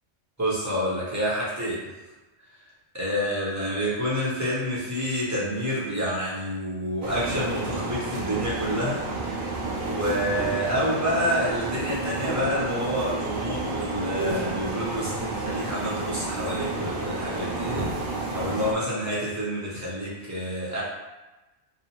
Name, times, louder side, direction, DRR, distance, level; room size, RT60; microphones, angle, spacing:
voice 1, 0.4-1.8 2.9-9.3 9.8-17.9 18.3-20.8, equal, 20° right, -8 dB, 0.5 m, -28 dB
sound 1, 7.0-18.7, right 2 dB, 60° right, 0.7 m, -30 dB
2.7 x 2.0 x 2.8 m, 1.1 s
omnidirectional pair, 1.3 m